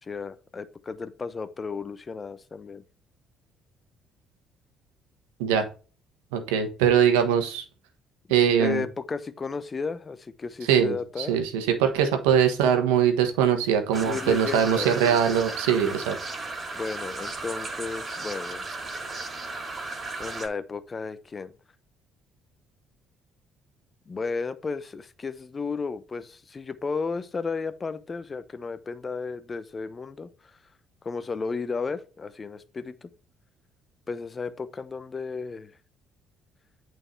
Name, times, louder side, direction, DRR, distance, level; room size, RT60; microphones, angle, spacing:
voice 1, 0.0-2.8 8.6-11.4 14.0-15.2 16.7-18.7 20.2-21.5 24.1-30.3 31.0-33.1 34.1-35.7, left 4 dB, 35° left, 0.9 m, -33 dB
voice 2, 6.3-7.6 8.3-8.8 10.7-16.2, right 8 dB, 85° right, 1.3 m, -22 dB
sound 1, 13.9-20.5, right 3 dB, 40° right, 2.6 m, -35 dB
8.8 x 4.7 x 3.3 m
hypercardioid pair, 60°, 0 cm